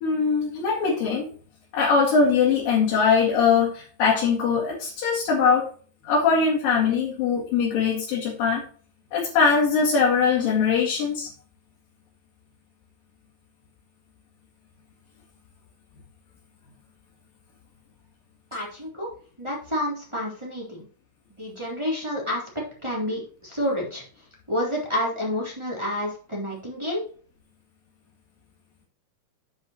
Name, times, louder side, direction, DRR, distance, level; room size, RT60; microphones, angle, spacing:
voice 1, 0.0-1.3 1.7-5.7 6.1-8.6 9.1-11.3, left 5 dB, 70° left, -4 dB, 3.7 m, -21 dB
voice 2, 18.5-19.1 19.4-20.8 21.4-22.4 22.8-24.0 24.5-27.0, equal, 10° right, -4 dB, 3.1 m, -29 dB
9.4 x 7.6 x 3.0 m, 0.43 s
omnidirectional pair, 4.2 m